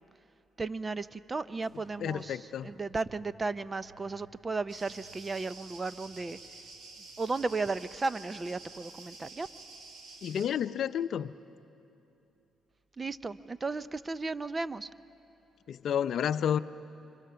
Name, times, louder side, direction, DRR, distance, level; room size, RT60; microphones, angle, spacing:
voice 1, 0.6-6.4 7.2-9.5 13.0-14.9, right 3 dB, 25° right, 15 dB, 0.6 m, -35 dB
sound 1, 1.6-8.8 9.4-10.1 10.9-11.4 12.4-12.5, right 4 dB, 50° right, 7.1 m, -62 dB
voice 2, 2.0-2.7 10.2-11.3 15.7-16.6, left 9 dB, 65° left, 13 dB, 0.5 m, -30 dB
sound 2, 4.7-10.5, right 3 dB, 70° right, 4.5 m, -50 dB
29.0 x 25.0 x 6.9 m, 2.9 s
cardioid pair, 90°, 0 cm